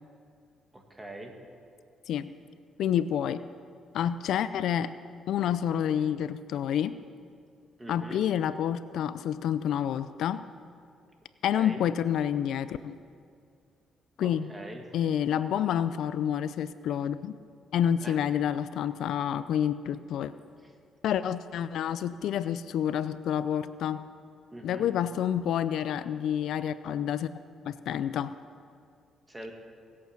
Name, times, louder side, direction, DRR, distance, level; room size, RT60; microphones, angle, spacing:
voice 1, 0.7-1.3 7.8-8.3 11.5-11.8 14.2-14.9 18.0-18.2 20.6-20.7 24.5-24.9 29.3-29.5, right 1 dB, 15° right, 3 dB, 1.8 m, -43 dB
voice 2, 2.8-3.4 3.9-4.9 5.3-7.0 7.9-10.4 11.4-13.0 14.2-14.5 14.9-17.4 17.7-20.3 21.0-24.0 24.6-27.4 27.7-28.4, left 9 dB, 75° left, 14 dB, 0.4 m, -28 dB
18.5 x 8.4 x 5.9 m, 2.3 s
cardioid pair, 105°, 0 cm